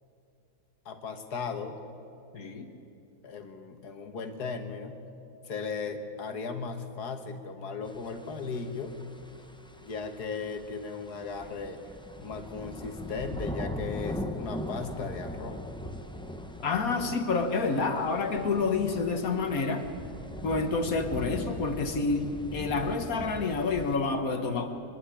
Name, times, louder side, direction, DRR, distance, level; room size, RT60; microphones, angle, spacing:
voice 1, 0.9-1.8 3.2-5.0 5.5-9.0 9.8-11.8 12.2-15.6, left 5 dB, 80° left, 6 dB, 2.0 m, -36 dB
voice 2, 2.3-2.7 16.6-19.9 20.4-24.7, left 4 dB, 65° left, 6 dB, 1.6 m, -28 dB
sound 1, 7.9-24.0, left 1 dB, 5° left, 0.6 m, -41 dB
24.5 x 11.0 x 9.9 m, 2.8 s
omnidirectional pair, 1.7 m